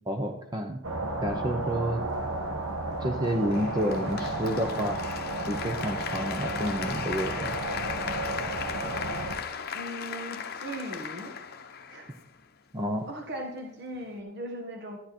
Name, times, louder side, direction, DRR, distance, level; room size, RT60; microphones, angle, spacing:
voice 1, 0.1-0.8 1.2-2.0 3.0-5.0 5.5-7.5 12.7-13.1, equal, 20° right, 4 dB, 0.7 m, -30 dB
sound 1, 0.8-9.3, right 1 dB, 75° right, 1.9 m, -33 dB
Applause, 3.5-12.5, left 7 dB, 50° left, 0.8 m, -37 dB
voice 2, 9.7-11.3 11.9-12.1 13.1-15.0, right 1 dB, 55° right, 2 dB, 1.6 m, -38 dB
13.0 x 10.5 x 4.4 m, 0.79 s
head